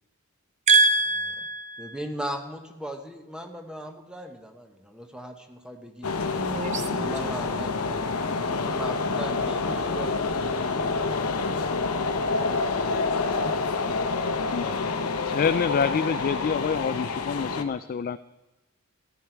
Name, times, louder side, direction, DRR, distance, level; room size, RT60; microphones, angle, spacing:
voice 1, 0.7-1.9 6.4-7.1, right 3 dB, 35° right, 9 dB, 0.8 m, -23 dB
voice 2, 1.8-6.1 6.7-11.5, right 1 dB, 5° right, 4 dB, 1.1 m, -38 dB
sound 1, 6.0-17.6, left 4 dB, 75° left, 0.9 m, -27 dB
voice 3, 14.5-18.2, left 6 dB, 40° left, 13 dB, 0.3 m, -27 dB
14.5 x 11.0 x 4.6 m, 1.1 s
head